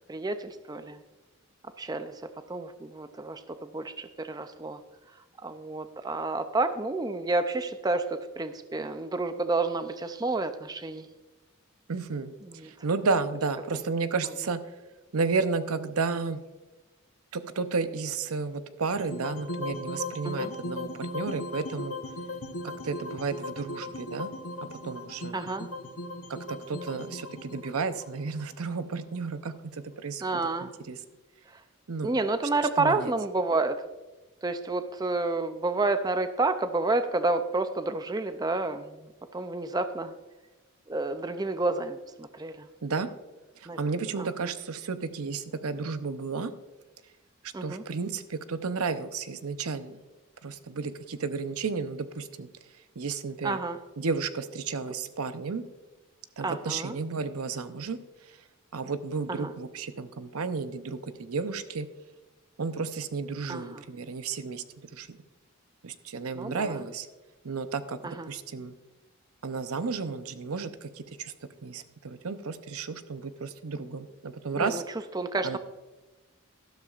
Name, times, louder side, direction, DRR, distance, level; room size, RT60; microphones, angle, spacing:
voice 1, 0.1-1.0 1.8-2.1 2.5-3.4 3.7-4.8 5.4-11.1 12.4-12.7 20.2-20.5 25.3-25.7 30.2-30.7 32.0-33.8 34.4-38.9 39.3-40.1 40.9-42.7 43.7-43.8 44.2-44.3 47.5-47.8 53.4-53.8 56.4-57.0 59.3-59.5 63.5-63.8 66.4-66.8 68.0-68.3 74.6-74.8 75.1-75.6, right 3 dB, 20° right, 9 dB, 0.4 m, -29 dB
voice 2, 11.9-12.3 12.6-14.6 15.1-16.4 17.3-22.0 22.8-24.3 24.8-25.4 26.3-31.0 31.9-32.2 32.8-33.1 42.8-43.1 43.8-46.5 47.6-50.0 50.4-52.5 53.0-53.6 54.0-55.6 56.4-58.0 58.7-61.9 62.6-64.6 64.9-65.2 65.8-67.1 67.4-68.0 68.3-68.7 69.4-71.3 71.6-74.8 75.4-75.6, right 4 dB, 85° right, 11 dB, 0.7 m, -32 dB
sound 1, 19.0-29.2, left 2 dB, 70° left, 0.9 m, -38 dB
12.5 x 12.5 x 2.5 m, 1.2 s
head